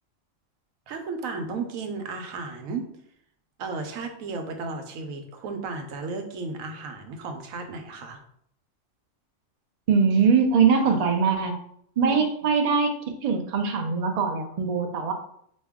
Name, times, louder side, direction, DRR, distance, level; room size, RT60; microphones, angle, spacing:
voice 1, 0.9-2.9 3.6-8.2 12.0-12.5, right 4 dB, 90° right, 5 dB, 1.1 m, -34 dB
voice 2, 9.9-11.5 12.0-12.9 13.2-15.1, right 5 dB, 55° right, 4 dB, 0.4 m, -22 dB
5.2 x 2.2 x 3.5 m, 0.67 s
omnidirectional pair, 1.4 m